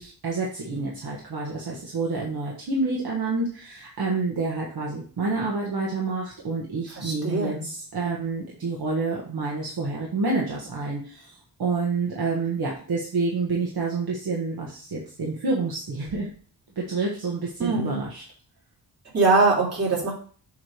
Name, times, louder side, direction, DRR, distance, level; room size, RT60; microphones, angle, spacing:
voice 1, 0.0-16.3 16.7-18.2, right 3 dB, 60° right, -2 dB, 1.3 m, -28 dB
voice 2, 7.0-7.7 17.6-18.0 19.1-20.1, right 3 dB, 35° right, -6 dB, 2.9 m, -22 dB
7.2 x 3.2 x 5.0 m, 0.43 s
wide cardioid pair, 170°, 41 cm